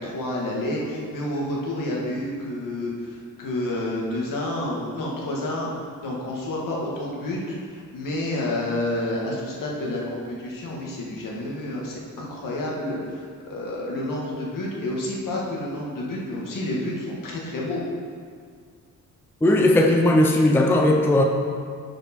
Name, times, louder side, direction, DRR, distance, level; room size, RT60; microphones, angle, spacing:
voice 1, 0.0-5.7 6.0-17.8, left 1 dB, 75° left, -3 dB, 1.9 m, -29 dB
voice 2, 19.4-21.2, left 1 dB, 5° left, 1 dB, 0.4 m, -17 dB
10.5 x 5.2 x 4.5 m, 2.1 s
wide cardioid pair, 180°, 33 cm